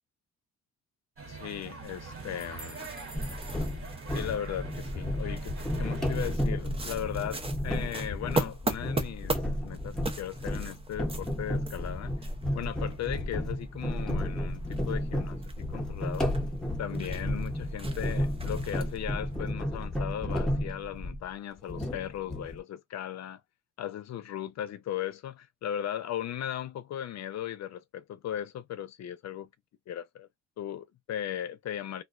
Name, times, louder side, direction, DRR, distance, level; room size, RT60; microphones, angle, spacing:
sound 1, 1.2-6.4, right 4 dB, 45° right, 1.2 m, -43 dB
voice 1, 1.3-2.9 4.1-9.4 9.6-12.3 12.5-16.3 16.8-23.4 23.8-29.5 29.9-30.3 30.6-32.0, left 10 dB, 60° left, 0.6 m, -37 dB
sound 2, 1.8-19.4, right 2 dB, 20° right, 0.6 m, -40 dB
sound 3, 3.1-21.3 21.7-22.6, left 1 dB, ahead, 0.9 m, -33 dB
2.4 x 2.2 x 2.4 m
cardioid pair, 90°, 30 cm